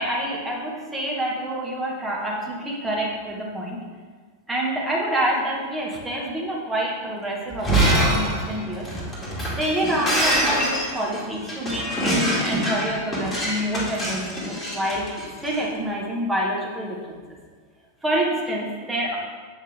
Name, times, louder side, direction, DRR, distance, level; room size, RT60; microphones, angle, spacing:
voice 1, 0.0-3.8 4.5-8.9 9.6-15.1 15.4-17.2 18.0-19.2, right 1 dB, 10° right, -4 dB, 1.7 m, -27 dB
Shatter, 7.5-15.5, right 1 dB, 15° left, 2.3 m, -24 dB
7.9 x 6.3 x 3.5 m, 1.5 s
figure-of-eight pair, 90°, 0 cm